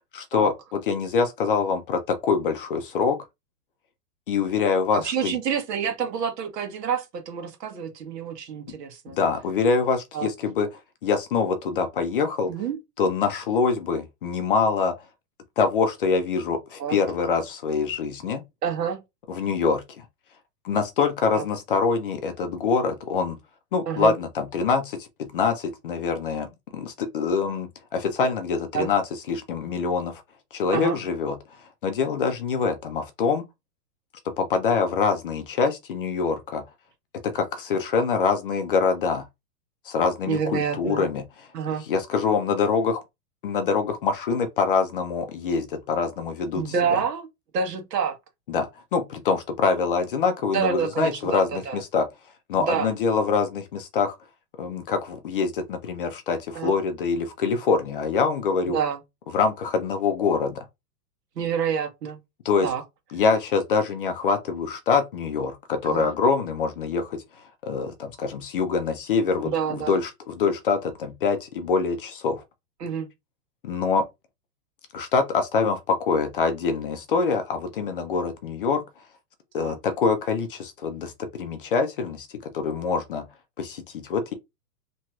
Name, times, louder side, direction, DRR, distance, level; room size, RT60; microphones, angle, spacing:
voice 1, 0.1-3.2 4.3-5.4 9.1-10.7 11.0-12.5 13.0-14.9 15.6-18.4 19.3-20.0 20.6-23.4 23.7-29.0 29.3-30.2 30.5-31.3 31.8-33.4 34.4-36.6 37.2-39.3 39.9-41.2 41.9-43.0 43.4-47.0 48.5-52.0 52.5-54.2 54.6-58.8 59.3-60.6 62.4-62.7 63.1-67.2 67.6-72.4 73.6-74.0 74.9-78.8 79.5-82.3 82.5-83.2 83.6-84.3, left 5 dB, 40° left, 0.4 m, -25 dB
voice 2, 4.9-9.2 10.1-10.3 12.5-12.8 16.8-17.0 18.6-19.0 21.3-21.4 23.9-24.1 28.7-28.9 30.7-31.0 40.3-41.1 41.5-41.8 46.5-47.3 47.5-48.2 50.5-51.8 52.6-52.9 56.5-56.8 58.7-59.0 61.4-62.2 62.6-62.8 65.8-66.1 69.4-70.0 72.8-73.1 79.6-79.8, right 7 dB, 80° right, 1.3 m, -28 dB
3.0 x 2.8 x 2.3 m
hypercardioid pair, 150°, 47 cm